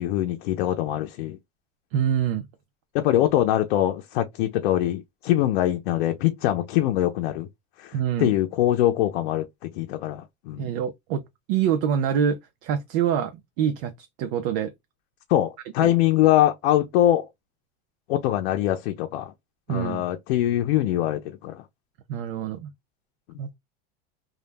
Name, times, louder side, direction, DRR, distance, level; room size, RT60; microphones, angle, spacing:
voice 1, 0.0-1.4 2.9-7.5 7.8-10.7 15.3-17.3 18.1-19.3 19.7-21.6, left 13 dB, 90° left, 0.5 m, -23 dB
voice 2, 1.9-2.4 7.9-8.3 10.6-11.2 11.5-14.7 15.8-15.9 19.7-20.0 22.1-22.7 23.4-23.5, right 8 dB, 60° right, 0.5 m, -25 dB
2.3 x 2.0 x 3.2 m
supercardioid pair, 160°, 30 cm